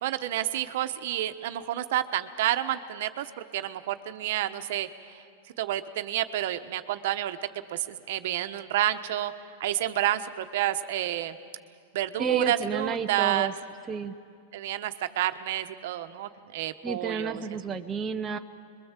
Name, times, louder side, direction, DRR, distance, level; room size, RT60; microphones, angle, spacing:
voice 1, 0.0-5.2 5.6-7.4 7.7-9.3 9.6-11.4 11.9-13.5 14.5-17.4, right 13 dB, 60° right, 9 dB, 1.1 m, -29 dB
voice 2, 12.2-13.5 13.9-14.1 16.8-18.4, right 6 dB, 15° right, 5 dB, 0.7 m, -30 dB
27.5 x 22.5 x 7.5 m, 2.4 s
supercardioid pair, 150°, 0 cm